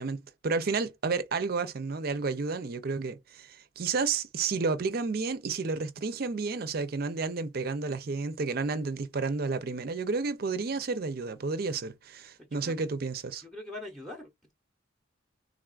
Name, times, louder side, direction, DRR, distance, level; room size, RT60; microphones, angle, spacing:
voice 1, 0.0-13.4, right 4 dB, 50° right, 0.5 m, -31 dB
voice 2, 12.4-12.7 13.4-14.5, left 2 dB, ahead, 0.7 m, -43 dB
3.7 x 2.3 x 2.3 m
head